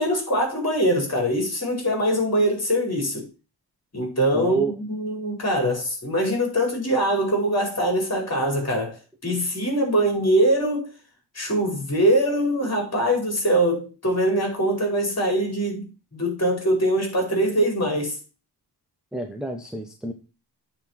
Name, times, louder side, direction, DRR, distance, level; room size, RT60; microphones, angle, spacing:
voice 1, 0.0-3.2 3.9-10.9 11.3-18.2, right 1 dB, 35° left, 5.1 m, -23 dB
voice 2, 4.3-4.8 19.1-20.1, right 2 dB, ahead, 1.2 m, -29 dB
9.1 x 4.4 x 7.4 m
wide cardioid pair, 105°, 43 cm